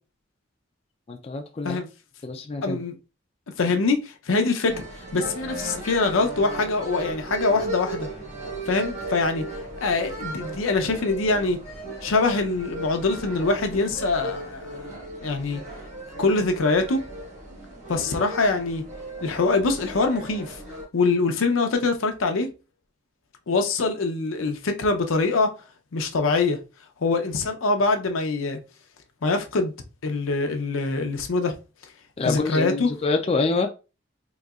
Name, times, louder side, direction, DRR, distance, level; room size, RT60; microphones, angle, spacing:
voice 1, 1.1-1.8 2.2-2.8 32.2-33.7, left 3 dB, 30° left, 0.3 m, -26 dB
voice 2, 2.6-2.9 3.6-4.8 5.1-8.1 8.7-9.5 9.8-11.6 12.0-14.9 15.2-15.6 16.2-17.0 17.9-18.8 19.2-20.6 20.9-22.5 23.5-25.5 25.9-26.6 27.0-28.6 29.2-29.7 30.0-31.5 32.2-32.9, left 3 dB, 85° left, 0.6 m, -24 dB
sound 1, 4.6-20.8, right 2 dB, 35° right, 1.2 m, -36 dB
3.9 x 2.8 x 2.3 m
head